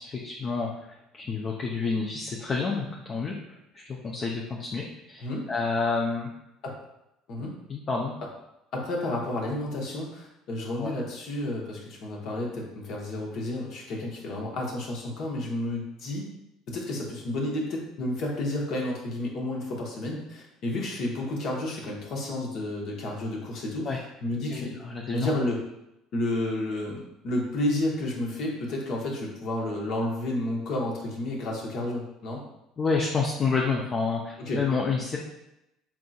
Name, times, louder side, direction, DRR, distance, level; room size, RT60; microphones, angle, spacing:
voice 1, 0.0-3.3 3.7-6.3 7.7-8.1 10.8-10.9 23.8-24.0 24.5-25.3 32.8-35.2, left 4 dB, 35° left, -2 dB, 0.6 m, -29 dB
voice 2, 8.7-16.3 16.7-24.7 25.1-25.6 26.1-32.4 34.4-34.6, left 1 dB, 55° left, -1 dB, 1.1 m, -31 dB
4.4 x 3.7 x 2.3 m, 0.86 s
hypercardioid pair, 65°, 0 cm